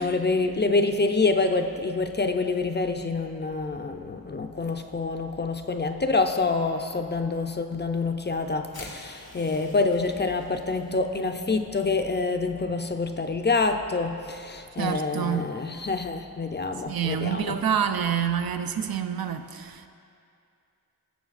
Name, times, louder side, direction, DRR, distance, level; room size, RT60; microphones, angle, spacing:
voice 1, 0.0-17.6, left 3 dB, 30° left, 6 dB, 0.4 m, -27 dB
sound 1, 8.7-10.9, left 2 dB, 90° left, 1.8 m, -47 dB
voice 2, 14.8-15.5 16.9-19.9, right 8 dB, 75° right, 8 dB, 0.5 m, -27 dB
14.5 x 6.9 x 2.4 m, 2.5 s
wide cardioid pair, 70°, 36 cm